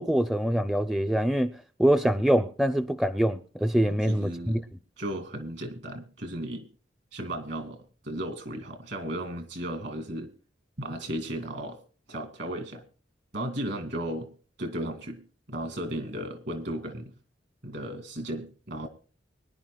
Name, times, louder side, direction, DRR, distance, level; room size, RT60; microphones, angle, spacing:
voice 1, 0.0-1.5 1.8-4.6, right 1 dB, ahead, 0.5 m, -24 dB
voice 2, 3.9-4.6 5.0-6.7 7.1-10.3 10.8-11.8 12.1-12.8 13.3-14.3 14.6-15.2 15.5-17.1 17.6-18.9, right 1 dB, 65° right, 2.4 m, -35 dB
24.0 x 11.0 x 2.3 m
head